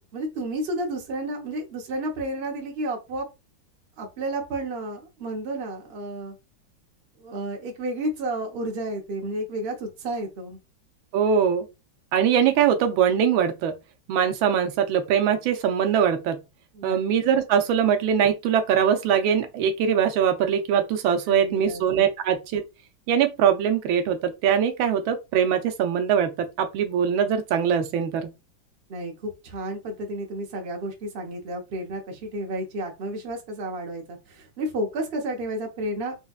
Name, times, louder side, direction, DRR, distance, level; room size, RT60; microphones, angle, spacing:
voice 1, 0.1-3.3 4.0-6.4 7.2-10.6 16.7-17.0 21.3-21.8 28.9-36.2, right 1 dB, 45° right, 0.8 m, -31 dB
voice 2, 11.1-11.6 12.1-13.8 14.1-16.4 16.8-22.6 23.1-28.3, right 8 dB, 85° right, 1.4 m, -22 dB
4.4 x 2.4 x 2.3 m
omnidirectional pair, 2.2 m